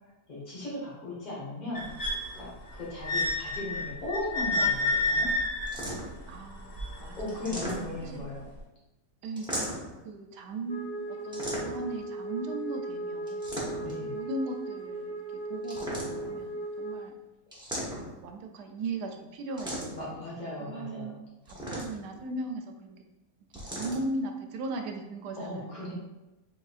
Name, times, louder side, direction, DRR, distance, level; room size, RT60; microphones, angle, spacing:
voice 1, 0.3-1.9 2.3-5.3 7.2-8.5 13.7-14.1 20.0-21.2 25.4-25.9, left 1 dB, 30° left, -6 dB, 1.4 m, -37 dB
sound 1, 1.7-7.8 8.6-8.7, left 2 dB, 50° left, 1.0 m, -31 dB
sound 2, 5.7-6.2 7.3-8.2 9.3-10.0 11.3-12.0 13.3-14.0 15.6-16.4 17.5-18.3 19.6-20.1 21.4-22.2 23.5-24.0, right 1 dB, 5° right, 0.5 m, -36 dB
voice 2, 6.3-7.6 8.0-8.3 9.2-9.5 10.0-13.5 14.0-17.1 18.1-20.2 20.6-23.0 23.6-25.9, right 2 dB, 80° right, 4 dB, 1.1 m, -38 dB
Wind instrument woodwind instrument, 10.7-17.1, right 1 dB, 75° left, 1.8 m, -37 dB
3.7 x 3.7 x 2.4 m, 0.99 s
omnidirectional pair, 1.8 m